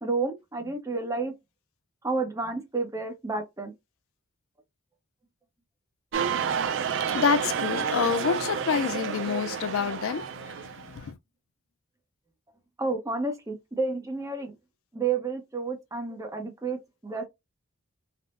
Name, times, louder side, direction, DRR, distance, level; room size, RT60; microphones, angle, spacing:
voice 1, 0.0-1.3 2.0-3.7 12.8-14.6 14.9-16.8 17.0-17.3, right 3 dB, 15° right, 0.7 m, -30 dB
sound 1, 6.1-11.0, right 7 dB, 60° right, 0.4 m, -30 dB
voice 2, 7.1-11.1, left 6 dB, 75° left, 0.4 m, -28 dB
3.4 x 2.0 x 2.4 m
head